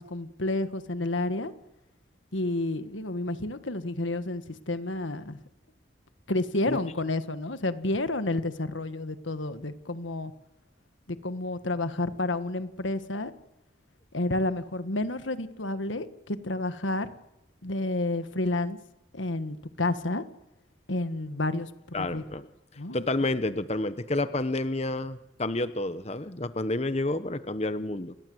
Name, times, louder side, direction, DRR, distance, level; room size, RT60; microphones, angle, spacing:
voice 1, 0.0-1.5 2.3-5.4 6.3-10.3 11.1-13.3 14.1-17.1 17.6-18.8 19.1-20.2 20.9-21.7 22.0-22.2 22.8-23.0, left 2 dB, 90° left, 11 dB, 1.6 m, -30 dB
voice 2, 21.9-22.5 22.9-28.1, left 2 dB, 35° left, 12 dB, 1.0 m, -29 dB
30.0 x 21.5 x 8.0 m, 0.92 s
head